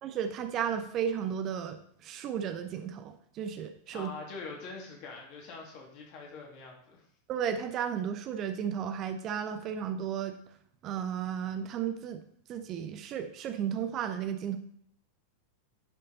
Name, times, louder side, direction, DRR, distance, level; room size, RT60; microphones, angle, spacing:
voice 1, 0.0-4.1 7.3-10.4 10.8-12.2 12.5-14.6, right 8 dB, 35° right, 8 dB, 0.7 m, -34 dB
voice 2, 3.9-7.0, left 4 dB, 40° left, 0 dB, 2.4 m, -44 dB
10.5 x 5.3 x 4.1 m, 0.67 s
figure-of-eight pair, 90°, 0 cm